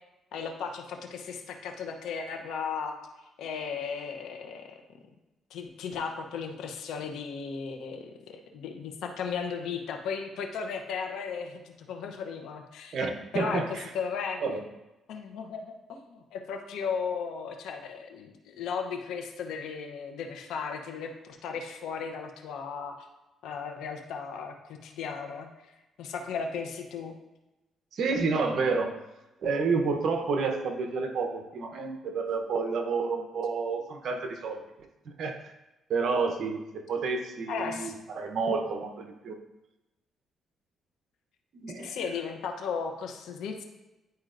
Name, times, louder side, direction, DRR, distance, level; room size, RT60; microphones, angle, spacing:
voice 1, 0.3-3.0 3.4-4.8 5.5-13.0 13.3-14.4 15.1-23.1 23.4-25.5 26.0-27.1 37.5-37.9 41.8-43.6, left 6 dB, 80° left, 4 dB, 0.8 m, -36 dB
voice 2, 12.9-13.8 14.4-14.6 27.9-28.9 29.4-34.6 35.2-35.4 35.9-39.4 41.5-42.0, right 4 dB, 65° right, 5 dB, 0.9 m, -29 dB
10.5 x 4.3 x 2.6 m, 1.0 s
cardioid pair, 90°, 0 cm